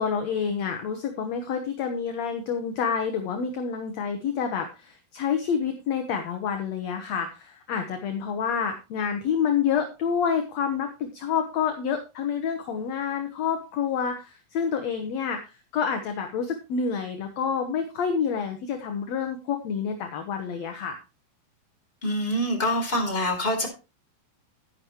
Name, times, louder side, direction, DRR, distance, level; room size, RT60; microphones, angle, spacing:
voice 1, 0.0-21.0, left 7 dB, 65° left, 5 dB, 2.0 m, -28 dB
voice 2, 22.0-23.7, left 1 dB, 15° left, 1 dB, 3.8 m, -25 dB
11.5 x 10.5 x 3.1 m, 0.29 s
omnidirectional pair, 4.1 m